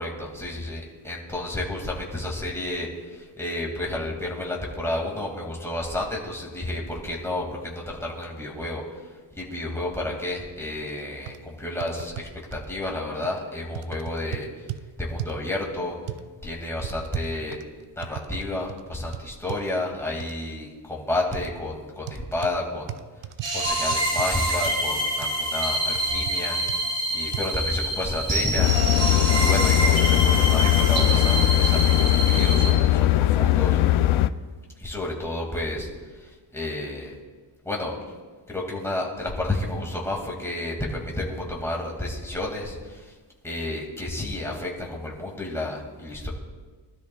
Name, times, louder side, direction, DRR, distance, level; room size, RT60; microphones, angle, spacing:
voice 1, 0.0-9.0 9.3-14.7 15.0-16.0 16.4-17.6 18.0-23.0 23.5-26.6 27.1-28.7 29.0-33.8 34.8-37.1 37.6-37.9 38.5-43.1 43.4-46.3, left 1 dB, 5° left, -2 dB, 2.1 m, -31 dB
sound 1, 10.8-10.9 11.3-11.4 11.8-12.7 13.2-13.4 13.7-14.8 15.2-15.5 16.1-16.2 16.8-18.4 18.7-18.8 19.1-19.6 20.2-20.3 21.3-21.5 22.1-22.6 22.9-24.3 24.7-24.8 25.2-25.4 25.9-26.4 26.7-26.8 27.3-27.4, right 13 dB, 80° right, 0.7 m, -36 dB
sound 2, 23.4-32.7, right 1 dB, 60° right, 4.4 m, -26 dB
sound 3, 28.6-34.3, left 14 dB, 80° left, 0.6 m, -20 dB
22.0 x 12.5 x 2.3 m, 1.4 s
wide cardioid pair, 160°, 48 cm